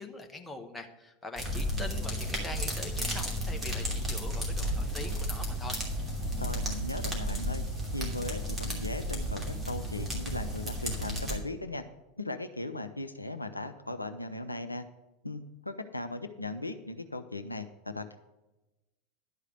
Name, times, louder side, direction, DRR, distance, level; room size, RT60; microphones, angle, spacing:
voice 1, 0.0-5.8, left 3 dB, 10° left, 4 dB, 1.2 m, -43 dB
sound 1, 1.4-11.4, equal, 10° right, 2.9 m, -33 dB
voice 2, 6.4-7.6 7.9-11.8 12.2-14.9 15.2-18.2, left 2 dB, 85° left, 9 dB, 0.5 m, -38 dB
11.5 x 4.9 x 8.0 m, 1.0 s
figure-of-eight pair, 80°, 0 cm